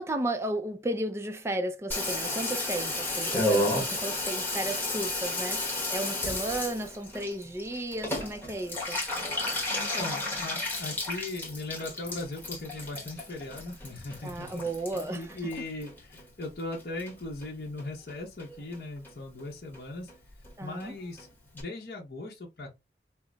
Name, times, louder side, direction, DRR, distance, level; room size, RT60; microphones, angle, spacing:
voice 1, 0.0-9.0 14.2-15.5 20.6-21.0, right 1 dB, 15° right, 0.4 m, -34 dB
Water tap faucet / Bathtub (filling or washing), 1.9-16.4 16.7-17.5 17.8-17.9 18.1-18.2 18.4-18.8 19.0-19.1 19.4-19.5 19.7-19.8 20.1-20.2 20.4-20.5 20.8-20.9 21.2-21.3 21.6-21.7, left 1 dB, 10° left, 1.1 m, -32 dB
voice 2, 9.8-14.6 14.9-20.1 20.6-21.3 21.5-22.7, left 2 dB, 55° left, 1.0 m, -38 dB
5.6 x 2.0 x 2.3 m
head